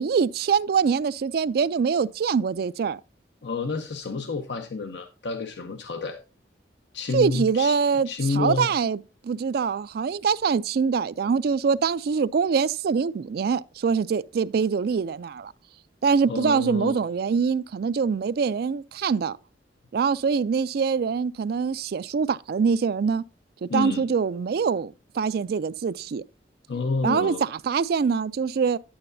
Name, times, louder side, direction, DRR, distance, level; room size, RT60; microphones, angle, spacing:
voice 1, 0.0-3.0 7.1-15.5 16.0-19.4 19.9-23.2 23.6-26.2 27.0-28.8, right 6 dB, 60° right, 0.3 m, -24 dB
voice 2, 3.4-6.2 6.9-8.7 16.3-17.0 23.7-24.1 26.7-27.4, left 4 dB, 70° left, 0.6 m, -29 dB
9.8 x 8.6 x 2.6 m
head